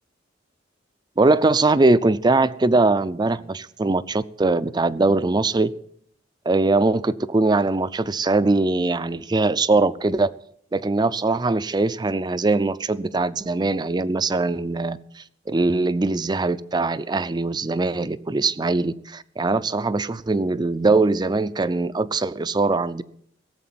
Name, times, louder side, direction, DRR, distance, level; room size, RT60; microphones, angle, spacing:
voice 1, 1.2-5.7 6.5-10.3 10.7-23.0, right 3 dB, 20° right, 0.5 m, -21 dB
17.0 x 7.8 x 7.6 m
head